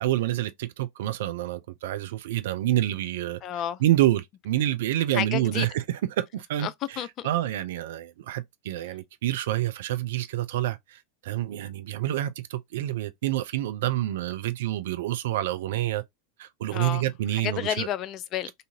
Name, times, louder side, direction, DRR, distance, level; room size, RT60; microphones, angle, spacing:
voice 1, 0.0-3.4 3.8-5.8 6.2-6.7 7.2-16.0 16.4-17.9, right 14 dB, 60° right, 0.4 m, -27 dB
voice 2, 3.4-3.8 5.1-5.7 6.6-7.3 16.7-17.1 17.3-18.5, left 10 dB, 40° left, 0.3 m, -31 dB
2.6 x 2.4 x 2.6 m
figure-of-eight pair, 85°, 0 cm